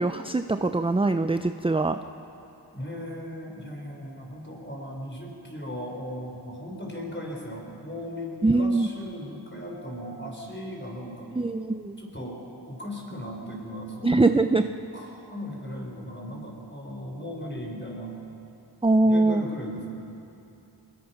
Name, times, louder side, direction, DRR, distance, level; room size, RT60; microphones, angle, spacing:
voice 1, 0.0-2.0 8.4-8.9 11.4-12.0 14.0-14.6 18.8-19.4, right 2 dB, 15° right, 9 dB, 0.5 m, -22 dB
voice 2, 2.7-11.3 12.0-14.4 14.9-18.1 19.0-19.9, equal, 25° left, 0 dB, 4.6 m, -37 dB
23.0 x 20.5 x 5.9 m, 2.9 s
wide cardioid pair, 50°, 42 cm